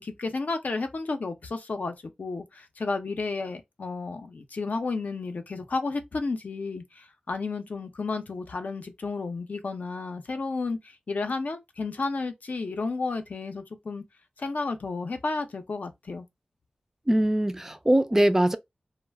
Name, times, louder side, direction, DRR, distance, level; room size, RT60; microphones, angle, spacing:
voice 1, 0.0-14.0 14.4-16.3, left 3 dB, 70° left, 0.5 m, -32 dB
voice 2, 17.1-18.6, right 1 dB, 15° right, 0.3 m, -22 dB
2.3 x 2.1 x 3.3 m
wide cardioid pair, 70°, 3 cm